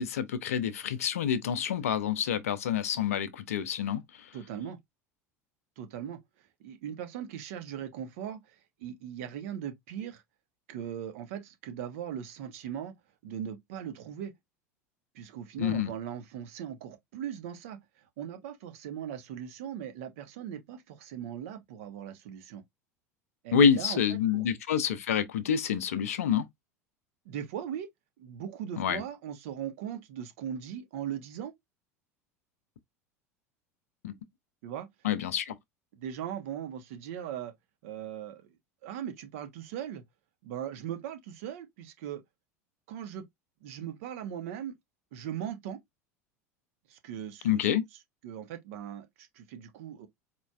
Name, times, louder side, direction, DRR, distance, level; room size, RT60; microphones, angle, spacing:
voice 1, 0.0-4.3 15.6-15.9 23.5-26.4 28.8-29.0 34.0-34.1 35.0-35.6 47.4-47.8, left 8 dB, 65° left, 0.6 m, -27 dB
voice 2, 4.3-4.8 5.8-6.2 6.6-10.2 10.7-12.9 13.2-14.3 15.1-22.6 23.4-24.4 27.2-27.9 28.2-31.5 34.6-34.9 35.9-37.5 37.8-38.5 38.8-40.0 40.4-42.2 42.9-43.3 43.6-44.7 45.1-45.8 46.9-47.7 48.2-50.1, right 9 dB, 60° right, 0.9 m, -39 dB
4.3 x 3.0 x 2.3 m
figure-of-eight pair, 75°, 8 cm